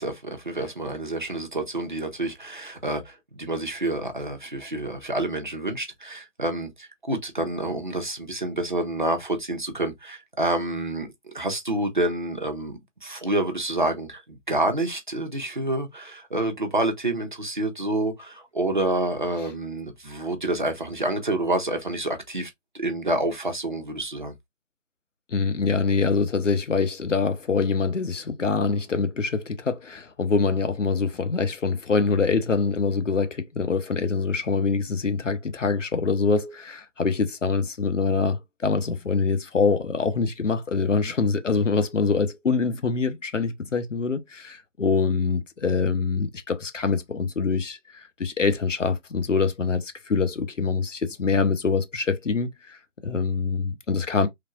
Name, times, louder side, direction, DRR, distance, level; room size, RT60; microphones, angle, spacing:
voice 1, 0.0-24.3, right 1 dB, 40° right, 0.6 m, -28 dB
voice 2, 25.3-52.8 53.0-54.3, left 4 dB, 75° left, 0.7 m, -24 dB
3.2 x 2.5 x 2.4 m
figure-of-eight pair, 160°, 37 cm